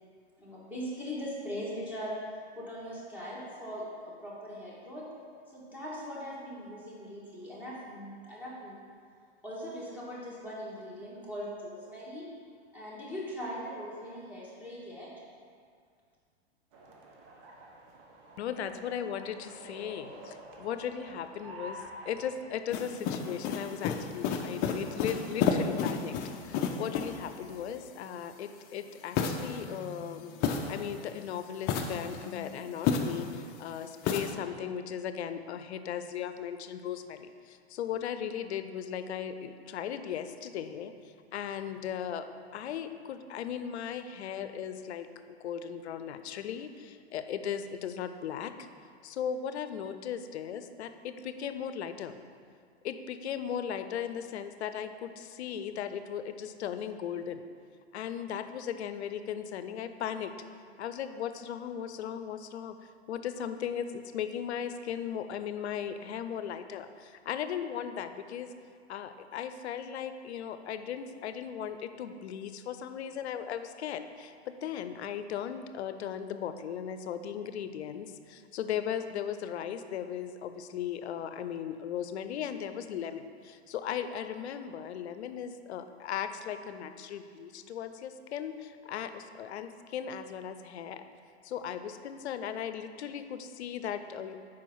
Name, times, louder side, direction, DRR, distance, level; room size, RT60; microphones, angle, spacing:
voice 1, 0.4-2.1 2.5-5.1 5.5-8.8 9.4-12.3 12.7-15.1, equal, 5° right, -7 dB, 1.6 m, -40 dB
sound 1, 16.7-22.5, right 1 dB, 50° right, 1.0 m, -48 dB
voice 2, 18.4-26.2 26.4-42.2 42.5-48.7 49.0-52.2 52.8-57.4 57.9-60.3 60.8-62.8 63.1-68.5 68.9-91.0 91.4-94.4, left 8 dB, 80° left, 10 dB, 0.5 m, -37 dB
sound 2, 22.7-27.3 29.1-31.1 31.6-33.4 34.0-34.3, left 6 dB, 30° left, 0.4 m, -32 dB
4.9 x 4.5 x 5.4 m, 2.2 s
hypercardioid pair, 115°, 33 cm